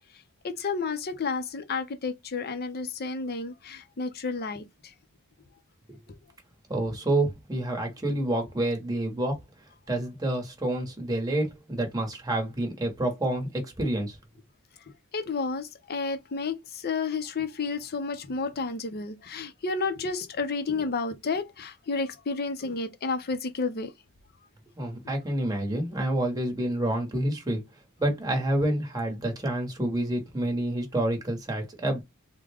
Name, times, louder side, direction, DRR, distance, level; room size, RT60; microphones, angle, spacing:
voice 1, 0.4-4.6 15.1-23.9, left 4 dB, 45° left, 0.6 m, -31 dB
voice 2, 6.7-9.4 9.9-14.2 24.8-27.6 28.0-32.0, right 1 dB, 15° right, 1.0 m, -28 dB
3.6 x 2.2 x 3.4 m
head